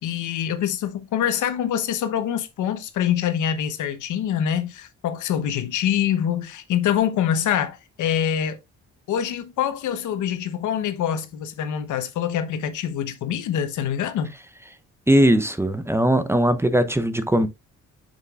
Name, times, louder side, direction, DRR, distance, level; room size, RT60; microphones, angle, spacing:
voice 1, 0.0-8.6 9.1-14.3, left 9 dB, 80° left, 1.2 m, -25 dB
voice 2, 15.1-17.5, right 1 dB, 10° right, 0.8 m, -19 dB
6.8 x 6.7 x 2.5 m
cardioid pair, 90°, 30 cm